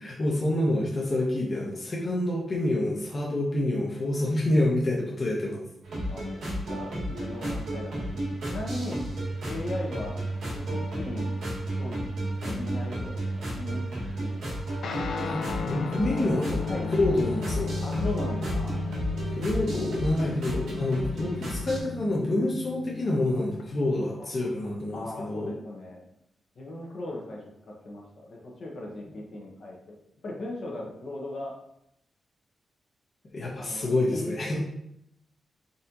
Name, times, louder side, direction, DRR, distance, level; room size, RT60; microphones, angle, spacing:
voice 1, 0.0-5.6 15.2-16.6 16.9-17.7 19.3-25.5 33.3-34.6, left 1 dB, 35° left, -3 dB, 0.8 m, -27 dB
sound 1, 5.8-21.8, right 1 dB, 85° right, 1.6 m, -32 dB
voice 2, 6.1-9.0 9.5-11.3 11.8-12.0 12.3-13.2 13.5-13.8 14.2-14.5 16.6-16.9 17.8-19.2 20.2-20.4 24.0-24.3 24.9-26.0 26.6-30.0 30.2-31.5 33.6-34.6, left 1 dB, 60° left, -2 dB, 1.0 m, -38 dB
Guitar, 14.8-23.6, left 6 dB, 80° left, 0.5 m, -35 dB
4.1 x 3.8 x 2.8 m, 0.78 s
wide cardioid pair, 125°, 0 cm